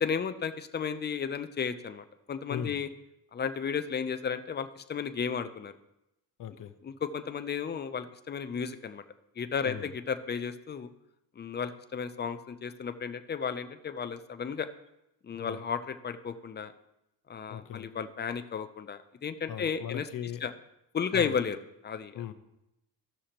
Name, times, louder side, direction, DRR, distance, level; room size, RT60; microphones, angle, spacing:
voice 1, 0.0-2.9 3.3-5.8 6.8-9.0 9.4-10.9 11.4-14.7 15.2-16.7 17.3-20.0 20.4-20.5 20.9-21.6 21.8-22.2, left 6 dB, 25° left, 10 dB, 0.6 m, -33 dB
voice 2, 2.5-2.8 6.4-6.7 9.6-9.9 15.3-15.6 17.5-17.9 19.5-20.5 21.1-21.4 22.1-22.3, left 9 dB, 55° left, 8 dB, 0.9 m, -38 dB
16.0 x 6.3 x 2.9 m, 0.89 s
cardioid pair, 110°, 38 cm